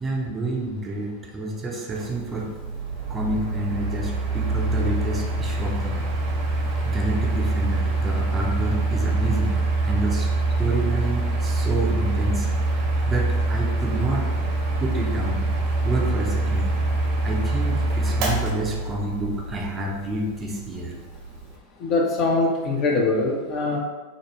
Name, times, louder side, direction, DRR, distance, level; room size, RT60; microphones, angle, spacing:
voice 1, 0.0-2.5 3.1-6.0 6.8-10.3 10.6-14.3 14.8-15.5 15.8-16.7 17.2-20.9, right 1 dB, 20° right, -1 dB, 0.6 m, -29 dB
Mechanical fan, 1.9-21.6, right 2 dB, 45° right, 0.9 m, -25 dB
voice 2, 21.8-23.8, left 3 dB, 35° left, -1 dB, 0.7 m, -22 dB
5.0 x 2.1 x 3.0 m, 1.2 s
figure-of-eight pair, 90°, 0 cm